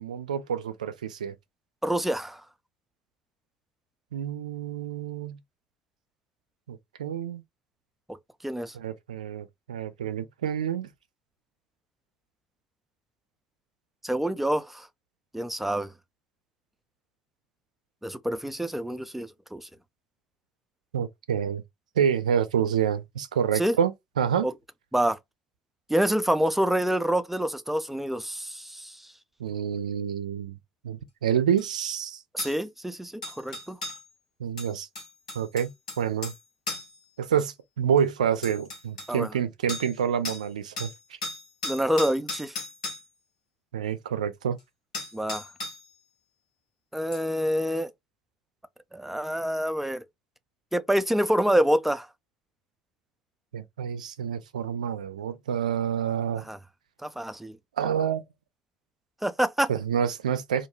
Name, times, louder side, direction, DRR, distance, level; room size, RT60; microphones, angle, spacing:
voice 1, 0.0-1.3 4.1-5.4 6.7-7.4 8.7-10.9 20.9-21.6 22.0-24.5 29.4-30.5 30.8-32.2 34.4-34.9 35.3-35.7 36.0-36.3 37.2-40.9 43.7-44.6 53.5-56.5 57.8-58.2 59.7-60.7, right 8 dB, 85° right, 0.3 m, -28 dB
voice 2, 1.8-2.4 8.4-8.7 14.0-14.9 15.3-15.9 18.0-19.7 23.5-23.7 24.4-24.5 24.9-25.2 25.9-29.0 32.3-33.8 39.1-39.3 41.6-42.6 45.1-45.5 46.9-47.9 48.9-50.0 50.7-52.1 56.5-56.6 57.0-57.6 59.2-59.7, equal, 5° right, 0.4 m, -27 dB
sound 1, 31.6-31.7 32.4-32.6 33.2-34.0 34.6-36.4 36.7-37.0 38.0-38.1 38.4-39.1 39.7-40.0 40.3-40.5 40.8-43.1 44.6-44.7 44.9-45.9 47.1-47.2, left 2 dB, 90° left, 1.0 m, -36 dB
2.3 x 2.2 x 3.0 m
hypercardioid pair, 60°, 4 cm